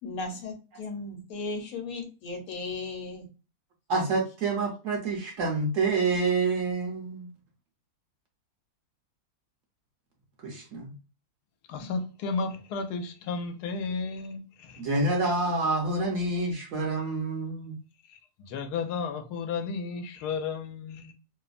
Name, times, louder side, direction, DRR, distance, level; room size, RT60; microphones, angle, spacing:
voice 1, 0.0-3.3, left 3 dB, 65° left, 1.1 m, -36 dB
voice 2, 3.9-7.3 10.4-10.9 14.8-17.8, right 3 dB, 65° right, 0.9 m, -27 dB
voice 3, 11.7-14.8 15.6-15.7 18.0-21.1, left 4 dB, 90° left, 1.1 m, -33 dB
2.9 x 2.0 x 2.4 m
omnidirectional pair, 1.7 m